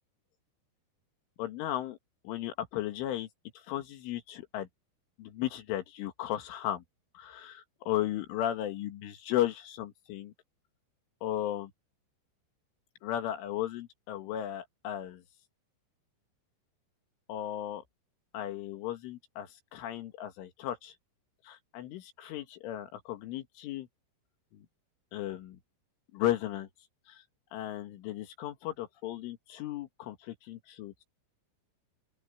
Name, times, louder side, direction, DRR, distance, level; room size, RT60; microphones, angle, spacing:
voice 1, 1.4-2.0 2.3-3.3 3.6-4.7 5.2-6.8 7.1-10.3 11.2-11.7 13.0-15.2 17.3-17.8 18.3-20.9 21.4-23.9 24.5-24.6 25.1-25.6 26.1-26.7 27.1-27.2 27.5-31.0, left 12 dB, 85° left, 4.3 m, -35 dB
open air
omnidirectional pair, 5.6 m